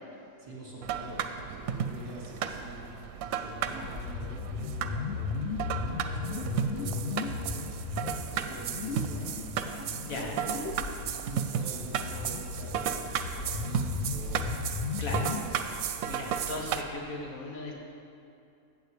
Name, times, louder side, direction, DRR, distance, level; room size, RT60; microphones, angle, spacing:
voice 1, 0.4-1.2 1.5-2.9 3.2-7.7 8.1-9.3 10.1-14.5 15.0-15.8, right 1 dB, 25° right, -6 dB, 2.2 m, -45 dB
sound 1, 0.8-16.8, right 8 dB, 80° right, 1.0 m, -34 dB
sound 2, 3.8-15.4, left 4 dB, 60° left, 0.8 m, -36 dB
voice 2, 10.0-10.4 15.0-15.3 16.1-17.7, left 2 dB, 80° left, -1 dB, 1.7 m, -37 dB
15.5 x 8.0 x 3.3 m, 2.6 s
omnidirectional pair, 1.5 m